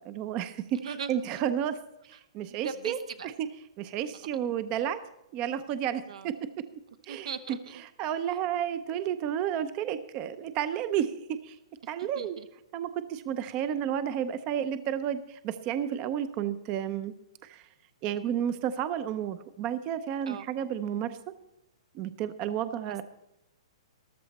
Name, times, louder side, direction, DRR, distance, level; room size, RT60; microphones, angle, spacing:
voice 1, 0.0-1.8 2.1-3.0 3.4-3.5 3.8-5.0 5.3-6.3 7.1-7.3 8.0-11.1 11.4-11.6 11.9-12.4 12.7-17.1 17.4-17.7 18.0-21.2 21.9-23.0, right 9 dB, 30° right, 12 dB, 0.6 m, -31 dB
voice 2, 0.8-1.4 2.4-3.3 6.1-6.3 7.1-7.8 12.1-12.5 20.3-20.5, right 6 dB, 80° right, 10 dB, 1.0 m, -39 dB
14.0 x 12.5 x 4.2 m, 0.87 s
hypercardioid pair, 155°, 3 cm